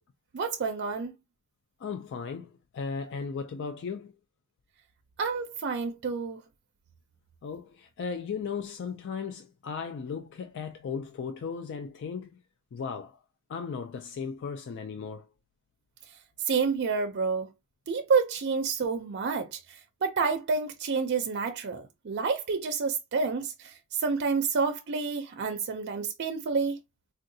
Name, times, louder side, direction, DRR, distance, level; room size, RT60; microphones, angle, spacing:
voice 1, 0.3-1.1 5.2-6.4 16.5-17.5 17.9-19.6 20.0-23.7 24.0-26.8, right 5 dB, 50° right, 0.4 m, -29 dB
voice 2, 1.8-4.1 7.4-12.3 12.7-13.2 13.5-15.2, left 5 dB, 55° left, 0.3 m, -36 dB
3.6 x 2.2 x 2.6 m
head